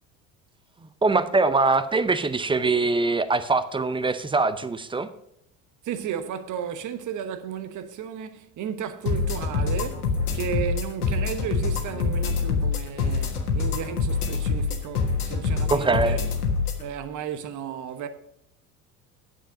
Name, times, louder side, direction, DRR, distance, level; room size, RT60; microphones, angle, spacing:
voice 1, 0.8-5.1 15.7-16.2, right 3 dB, 10° right, 0.6 m, -23 dB
voice 2, 5.8-16.2 16.8-18.1, right 8 dB, 40° right, 1.1 m, -34 dB
sound 1, 9.1-16.8, left 4 dB, 85° left, 1.5 m, -25 dB
9.0 x 7.6 x 5.1 m
hypercardioid pair, 70°, 44 cm